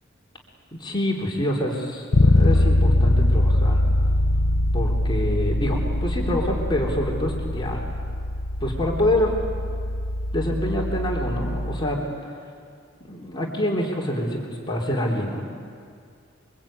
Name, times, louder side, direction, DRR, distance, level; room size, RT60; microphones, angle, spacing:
voice 1, 0.8-3.8 4.7-7.8 8.6-9.3 10.3-12.0 13.0-14.4 14.7-15.5, left 1 dB, 25° left, -2 dB, 3.4 m, -26 dB
Bass guitar, 2.1-12.0, left 1 dB, 70° left, 0.8 m, -22 dB
28.0 x 23.5 x 8.8 m, 2.2 s
head